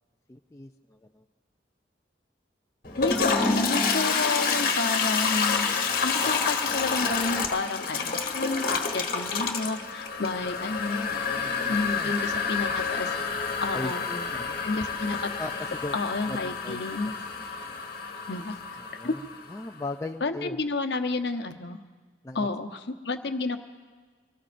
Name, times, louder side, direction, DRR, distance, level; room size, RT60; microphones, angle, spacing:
voice 1, 0.3-1.2 5.9-6.3 10.6-12.1 13.7-14.9 15.4-16.0 16.3-17.1 18.8-19.2 19.5-20.6 22.2-22.5, left 2 dB, 15° left, 3 dB, 0.4 m, -39 dB
Toilet flush, 2.8-19.6, left 5 dB, 50° left, 1.3 m, -29 dB
voice 2, 3.0-5.7 6.0-11.1 11.4-13.1 13.6-14.1 14.6-15.3 15.9-17.1 18.3-18.8 19.0-19.1 20.2-21.8 22.3-23.6, left 3 dB, 70° left, 7 dB, 0.9 m, -30 dB
25.0 x 18.0 x 2.6 m, 1.4 s
head